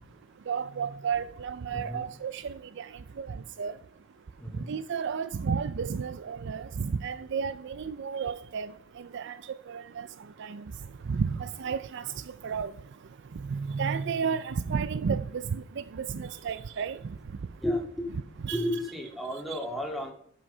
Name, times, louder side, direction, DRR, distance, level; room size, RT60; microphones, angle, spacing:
voice 1, 0.5-2.8 3.2-3.3 3.6-3.7 4.7-8.7 9.1-9.4 9.7-10.1 10.4-10.6 11.1-12.0 12.4-12.7 13.5-15.4 16.0-17.0 18.4-18.6 19.5-19.6, right 6 dB, 60° right, 0.4 m, -32 dB
voice 2, 1.7-2.1 4.4-4.7 17.6-18.2 18.5-20.1, equal, ahead, 2.0 m, -33 dB
13.5 x 6.2 x 5.5 m
head